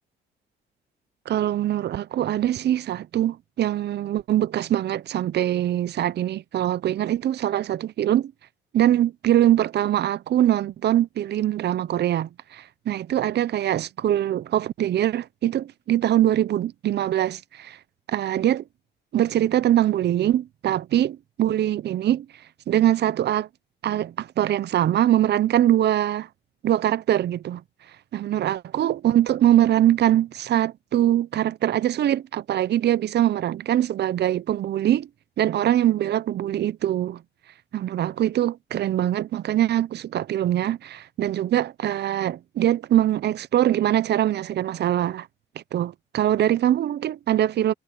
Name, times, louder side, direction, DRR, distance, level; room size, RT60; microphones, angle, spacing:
voice 1, 1.3-8.3 8.7-17.8 18.1-18.6 19.1-22.3 22.7-23.5 23.8-26.3 26.6-27.6 28.1-35.1 35.4-37.2 37.7-45.3 45.7-47.7, right 12 dB, 60° right, 0.6 m, -23 dB
cardioid pair, 90°, 20 cm